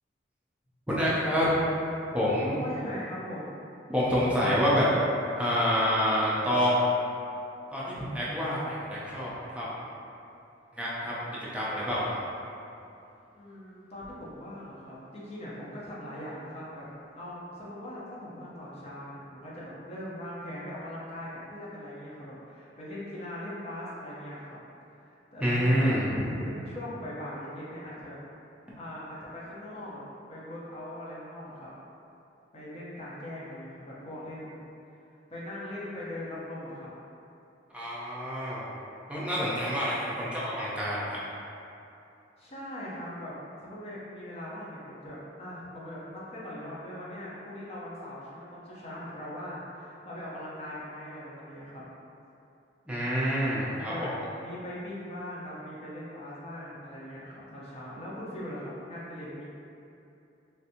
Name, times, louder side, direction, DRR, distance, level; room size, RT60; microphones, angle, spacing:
voice 1, 0.9-1.5 2.1-2.6 3.9-4.9 5.4-6.9 7.7-9.8 10.7-12.2 25.4-26.3 37.7-38.7 39.1-41.2 52.9-54.1, equal, 5° right, -8 dB, 0.5 m, -27 dB
voice 2, 2.6-3.7 13.3-16.9 17.1-24.6 24.9-26.0 26.2-28.2 28.8-30.0 30.3-31.7 32.5-34.6 35.3-36.9 42.4-51.8 53.7-54.1 54.4-59.5, left 1 dB, 35° left, -7 dB, 0.7 m, -40 dB
3.3 x 2.6 x 2.7 m, 2.7 s
head